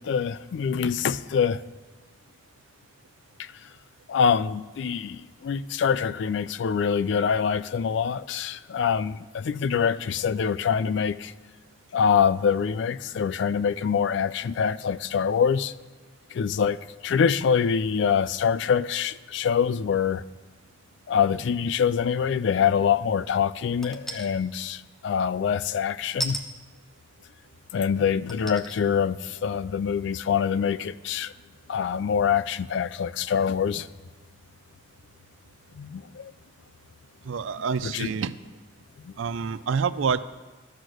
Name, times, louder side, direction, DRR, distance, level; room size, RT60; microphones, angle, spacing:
voice 1, 0.0-1.6 3.4-3.5 4.1-11.3 11.9-15.7 16.3-20.2 21.1-26.4 27.7-31.3 31.7-33.9 35.8-36.3 37.8-38.1 39.0-39.1, left 7 dB, 70° left, 0.3 m, -25 dB
sound 1, 23.8-24.3 26.2-26.4 27.4-27.5 28.3-28.8 29.3-29.4, right 1 dB, ahead, 0.5 m, -33 dB
voice 2, 37.2-38.3 39.2-40.2, right 6 dB, 85° right, 0.4 m, -27 dB
12.0 x 6.3 x 6.3 m
head